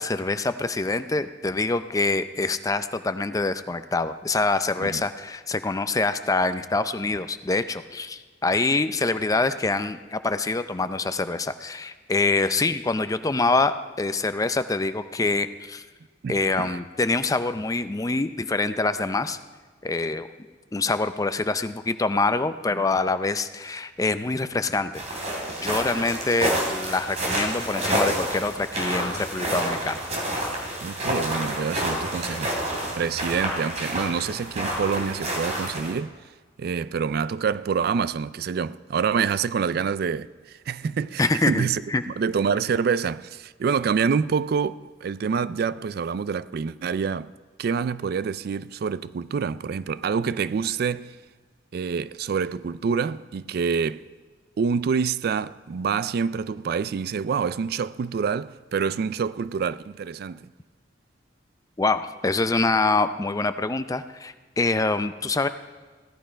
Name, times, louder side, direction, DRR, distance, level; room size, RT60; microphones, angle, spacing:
voice 1, 0.0-15.8 16.3-19.4 19.8-20.3 20.7-25.0 25.6-30.0 41.2-42.0 61.8-65.5, left 3 dB, 20° left, 0.5 m, -25 dB
voice 2, 16.2-16.8 30.8-32.5 33.0-36.1 36.6-41.8 42.2-47.3 47.6-51.1 51.7-54.0 54.6-60.4, right 6 dB, 55° right, 0.3 m, -27 dB
sound 1, 24.9-35.9, right 1 dB, 40° right, 3.0 m, -29 dB
15.5 x 11.0 x 5.1 m
head